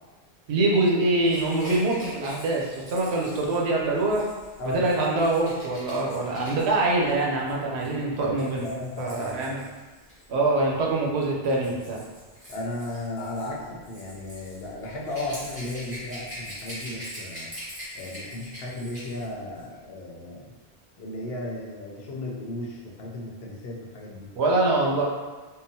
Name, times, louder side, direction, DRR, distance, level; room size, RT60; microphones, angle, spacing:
voice 1, 0.5-4.3 4.7-8.7 9.0-9.6 10.3-12.0 24.4-25.0, right 2 dB, 90° right, -2 dB, 0.9 m, -24 dB
Rattle / Rattle (instrument), 1.2-10.2 11.2-19.3 19.6-19.7, equal, 35° right, 1.1 m, -43 dB
voice 2, 8.3-9.5 12.5-17.5 17.9-20.5 21.0-24.3, left 1 dB, 75° left, -2 dB, 0.8 m, -35 dB
3.8 x 2.0 x 2.6 m, 1.3 s
omnidirectional pair, 1.1 m